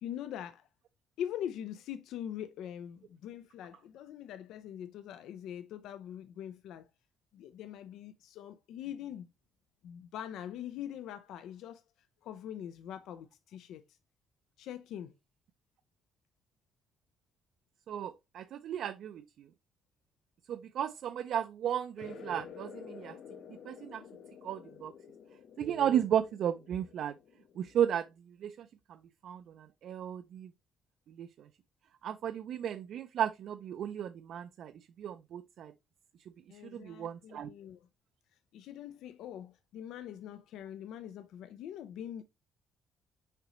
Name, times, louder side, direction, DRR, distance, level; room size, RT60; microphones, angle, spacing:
voice 1, 0.0-0.7 1.2-6.9 7.3-9.3 9.8-11.8 12.2-14.0 14.6-15.1 36.5-37.9 38.5-42.2, left 10 dB, 80° left, 0.5 m, -43 dB
voice 2, 17.9-19.5 20.5-23.2 23.7-24.0 24.4-24.9 25.6-27.1 27.6-28.1 28.4-28.7 29.2-30.5 31.1-31.3 32.0-34.7 35.0-35.7 36.6-37.5, right 9 dB, 55° right, 0.4 m, -34 dB
sound 1, 22.0-28.1, left 8 dB, 60° left, 1.0 m, -51 dB
6.6 x 5.0 x 3.0 m
cardioid pair, 170°, 0 cm